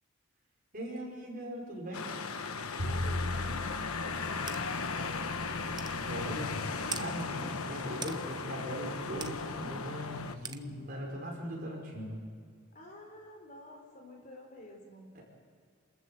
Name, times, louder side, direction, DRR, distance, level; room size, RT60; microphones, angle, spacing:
voice 1, 0.7-2.1 5.9-6.5 7.0-12.2 15.2-15.3, equal, 40° right, -2 dB, 5.4 m, -40 dB
sound 1, 1.9-10.4, left 4 dB, 90° left, 1.2 m, -37 dB
voice 2, 2.7-4.4 4.8-5.5 12.7-15.2, left 1 dB, 35° left, 2 dB, 4.0 m, -50 dB
Bowed string instrument, 2.8-8.9, left 1 dB, 80° right, 6.1 m, -40 dB
sound 2, 4.5-4.6 5.2-5.3 5.8-6.0 6.9-7.1 8.0-8.2 9.2-9.3 10.4-10.6, right 6 dB, 20° right, 0.7 m, -39 dB
28.0 x 14.0 x 7.9 m, 2.1 s
head